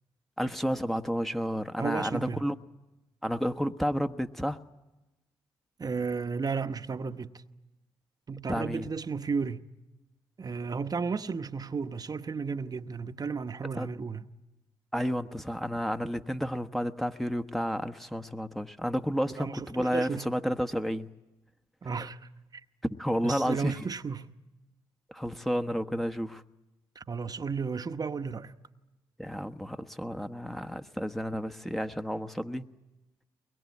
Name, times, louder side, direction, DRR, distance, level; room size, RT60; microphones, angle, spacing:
voice 1, 0.4-2.6 3.2-4.6 8.5-8.9 13.8-13.9 14.9-21.1 22.8-23.9 25.1-26.4 29.2-32.6, equal, ahead, 1.1 m, -31 dB
voice 2, 1.8-2.4 5.8-7.4 8.3-9.6 10.4-14.2 19.3-20.3 21.8-22.6 23.2-24.3 26.9-28.5, right 5 dB, 40° right, 1.0 m, -33 dB
23.0 x 21.5 x 9.5 m
supercardioid pair, 50°, 10 cm